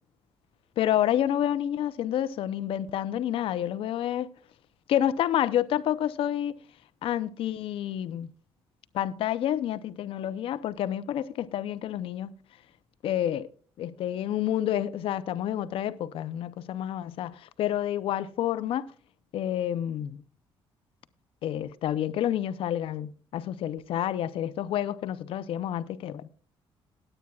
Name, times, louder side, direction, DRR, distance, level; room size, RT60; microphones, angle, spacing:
voice 1, 0.8-4.3 4.9-6.5 7.0-8.3 8.9-12.3 13.0-13.5 13.8-18.9 19.3-20.2 21.4-26.3, left 11 dB, 70° left, 0.7 m, -29 dB
19.0 x 8.9 x 2.4 m
cardioid pair, 155°, 10 cm